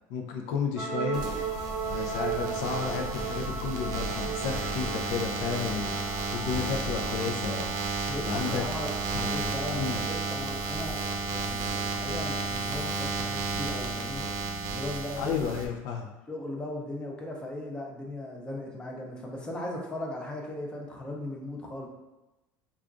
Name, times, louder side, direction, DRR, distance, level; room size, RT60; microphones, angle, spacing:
voice 1, 0.1-1.2 1.9-7.7 8.3-8.6 9.1-10.0 15.2-16.1, left 6 dB, 70° left, 2 dB, 0.4 m, -32 dB
sound 1, 0.8-14.0, right 5 dB, 5° right, 0.9 m, -38 dB
sound 2, 1.1-15.7, right 3 dB, 55° right, 0.5 m, -33 dB
voice 2, 8.1-11.0 11.3-14.2 14.7-15.4 16.3-21.9, left 1 dB, 10° left, 0 dB, 0.5 m, -37 dB
4.9 x 2.3 x 2.4 m, 1.0 s
cardioid pair, 155°, 8 cm